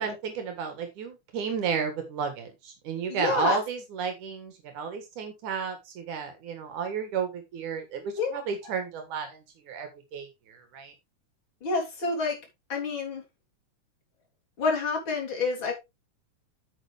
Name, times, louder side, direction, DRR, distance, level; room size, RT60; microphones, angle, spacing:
voice 1, 0.0-9.4 9.7-10.9, right 6 dB, 75° right, 6 dB, 3.2 m, -32 dB
voice 2, 3.1-3.6 8.2-8.4 11.6-12.4 12.7-13.2 14.6-15.7, left 4 dB, 40° left, 0 dB, 3.9 m, -28 dB
9.1 x 7.5 x 3.4 m, 0.23 s
omnidirectional pair, 3.5 m